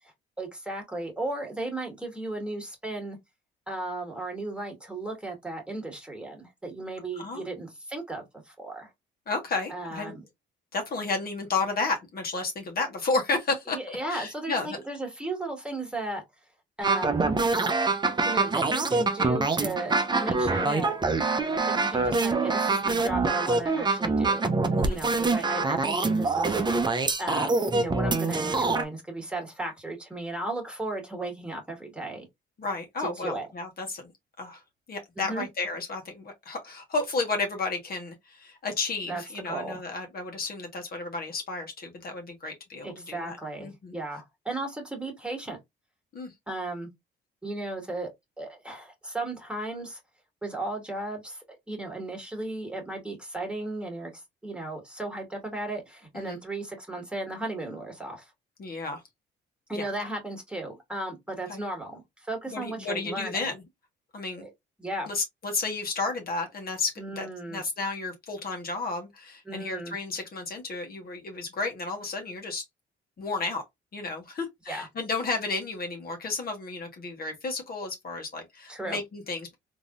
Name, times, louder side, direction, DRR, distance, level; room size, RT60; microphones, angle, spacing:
voice 1, 0.4-3.2 3.7-8.9 9.7-10.2 13.7-16.2 16.8-17.3 18.2-21.0 21.5-26.6 27.2-32.3 33.0-33.5 35.2-35.5 39.1-39.2 39.5-39.8 42.4-42.5 42.8-45.6 46.5-46.9 47.4-48.1 48.4-50.0 50.4-58.3 59.7-63.5 64.4-64.5 64.8-65.1 67.0-67.6 69.5-70.0 74.7-74.9 78.7-79.0, right 2 dB, 5° right, 1.8 m, -35 dB
voice 2, 9.3-10.1 10.7-14.8 24.8-25.0 32.6-34.1 34.4-34.6 34.9-43.9 46.1-46.3 56.1-56.4 58.6-59.0 59.7-59.9 61.5-61.6 62.5-63.6 64.1-64.5 65.1-72.6 73.2-73.6 73.9-79.5, left 3 dB, 50° left, 1.4 m, -32 dB
sound 1, 16.8-28.8, right 3 dB, 20° right, 0.7 m, -25 dB
3.6 x 2.9 x 2.5 m
cardioid pair, 90°, 20 cm